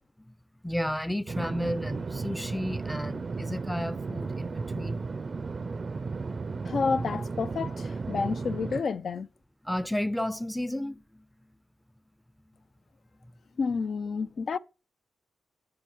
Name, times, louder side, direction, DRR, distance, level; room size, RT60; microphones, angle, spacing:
voice 1, 0.6-5.0 9.6-11.3, left 1 dB, 5° left, 0.6 m, -32 dB
sound 1, 1.3-8.8, right 4 dB, 45° right, 0.5 m, -34 dB
voice 2, 6.6-9.3 13.6-14.6, left 5 dB, 60° left, 0.6 m, -30 dB
10.5 x 5.5 x 7.2 m
cardioid pair, 80°, 0 cm